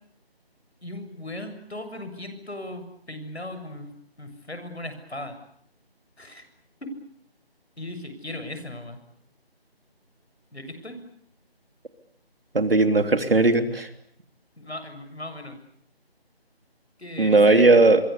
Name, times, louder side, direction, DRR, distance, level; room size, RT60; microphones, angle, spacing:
voice 1, 0.8-5.4 6.2-6.4 6.8-6.9 7.8-9.0 10.5-11.0 14.6-15.6 17.0-17.8, left 1 dB, 90° left, 8 dB, 7.3 m, -37 dB
voice 2, 12.5-13.9 17.2-18.0, right 2 dB, 65° right, 8 dB, 3.4 m, -17 dB
27.0 x 23.5 x 8.5 m, 0.69 s
figure-of-eight pair, 165°, 31 cm